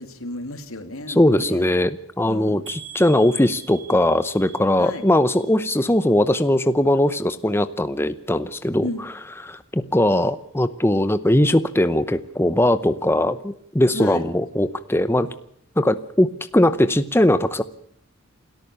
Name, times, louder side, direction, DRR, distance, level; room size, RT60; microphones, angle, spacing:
voice 1, 0.0-1.7 2.2-2.6 4.8-5.0 8.8-9.1 13.9-14.2, left 1 dB, 85° left, 8 dB, 2.8 m, -33 dB
voice 2, 1.1-9.1 9.4-15.3 15.8-17.6, left 1 dB, 10° left, 12 dB, 0.7 m, -20 dB
sound 1, 2.7-6.6 6.9-7.5 8.0-8.1 8.5-8.6, right 8 dB, 70° right, 6.1 m, -44 dB
28.5 x 13.5 x 6.9 m, 0.69 s
head